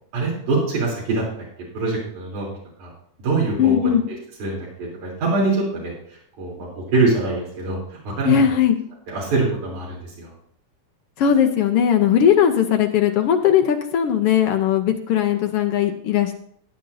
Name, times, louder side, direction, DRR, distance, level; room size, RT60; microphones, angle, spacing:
voice 1, 0.1-1.2 1.7-2.5 2.8-2.9 3.2-3.9 4.4-5.9 6.4-7.8 8.0-8.4 9.1-10.3, right 3 dB, 85° right, -4 dB, 4.8 m, -23 dB
voice 2, 3.6-4.0 8.2-8.8 11.2-16.4, left 9 dB, 70° left, 6 dB, 1.4 m, -18 dB
16.0 x 9.1 x 2.7 m, 0.63 s
omnidirectional pair, 3.4 m